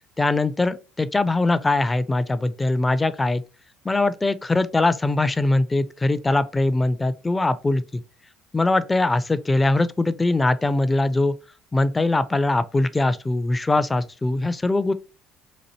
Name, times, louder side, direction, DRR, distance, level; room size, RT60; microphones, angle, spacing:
voice 1, 0.2-3.4 3.8-8.0 8.5-11.3 11.7-14.9, left 2 dB, 20° left, 0.3 m, -22 dB
4.0 x 2.6 x 2.8 m
hypercardioid pair, 60°, 0 cm